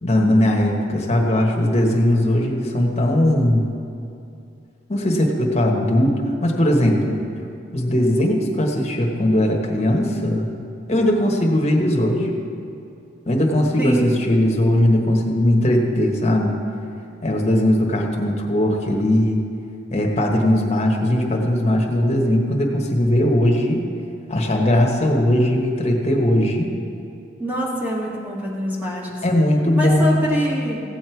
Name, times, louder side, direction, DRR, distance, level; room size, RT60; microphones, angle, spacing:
voice 1, 0.0-3.7 4.9-7.1 7.7-10.5 10.9-12.4 13.3-16.6 17.2-19.4 19.9-23.9 24.3-26.8 29.2-30.3, left 1 dB, 35° left, 0 dB, 1.3 m, -19 dB
voice 2, 27.4-29.1 29.7-30.8, equal, 10° right, -5 dB, 2.0 m, -24 dB
16.0 x 7.6 x 4.6 m, 2.6 s
head